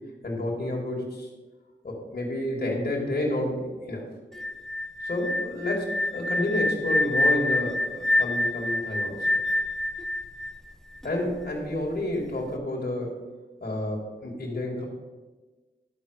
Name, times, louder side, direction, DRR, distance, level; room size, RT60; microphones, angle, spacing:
voice 1, 0.2-1.3 1.8-4.1 5.0-9.4 11.0-13.2 13.6-14.9, left 1 dB, 55° left, -2 dB, 2.3 m, -30 dB
sound 1, 4.3-11.2, left 1 dB, ahead, 0.7 m, -27 dB
11.5 x 4.1 x 6.4 m, 1.3 s
cardioid pair, 40°, 19 cm